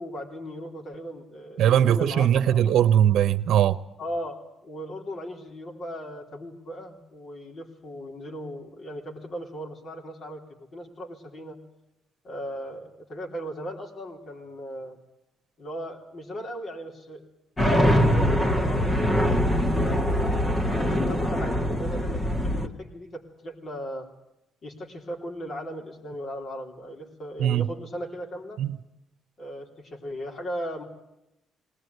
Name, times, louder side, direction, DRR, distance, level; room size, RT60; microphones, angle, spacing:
voice 1, 0.0-2.6 4.0-11.6 12.2-15.0 15.6-17.2 17.7-20.3 20.7-24.1 24.6-28.6 29.4-30.8, equal, 50° left, 3.5 m, -37 dB
voice 2, 1.6-3.8 27.4-27.6 28.6-28.8, right 10 dB, 75° right, 1.0 m, -20 dB
sound 1, 17.6-22.7, equal, 25° left, 1.8 m, -23 dB
20.0 x 19.0 x 9.5 m
cardioid pair, 90°, 0 cm